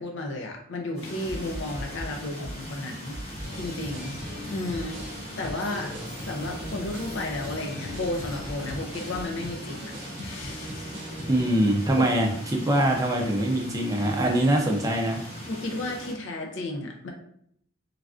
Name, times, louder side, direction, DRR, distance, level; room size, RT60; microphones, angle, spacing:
voice 1, 0.0-3.2 3.5-6.0 6.3-9.9 10.2-11.0 12.0-12.1 15.5-17.1, left 2 dB, 60° left, 2 dB, 0.5 m, -33 dB
sound 1, 0.9-9.3, equal, 85° left, 1.5 m, -41 dB
sound 2, 1.0-16.1, equal, 30° left, 0.8 m, -41 dB
sound 3, 3.4-11.4, equal, 60° right, 0.7 m, -40 dB
voice 2, 11.3-15.2, right 1 dB, 15° right, 1 dB, 0.4 m, -23 dB
3.2 x 2.5 x 2.4 m, 0.68 s
head